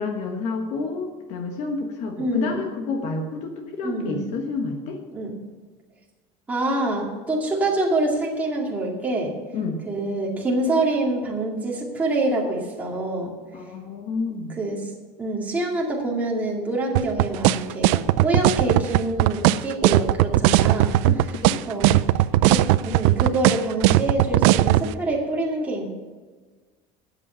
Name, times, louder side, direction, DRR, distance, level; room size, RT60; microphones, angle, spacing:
voice 1, 0.0-5.0 9.5-9.8 13.5-14.6 21.0-21.6, left 4 dB, 45° left, 3 dB, 1.3 m, -29 dB
voice 2, 2.2-2.6 3.8-4.2 5.1-5.3 6.5-9.3 9.9-13.3 14.5-14.9 15.2-21.0 21.7-22.0 22.4-25.8, right 2 dB, 10° right, -2 dB, 2.1 m, -26 dB
sound 1, 16.9-24.9, right 16 dB, 80° right, 0.5 m, -17 dB
12.5 x 8.6 x 5.6 m, 1.4 s
cardioid pair, 180°, 15 cm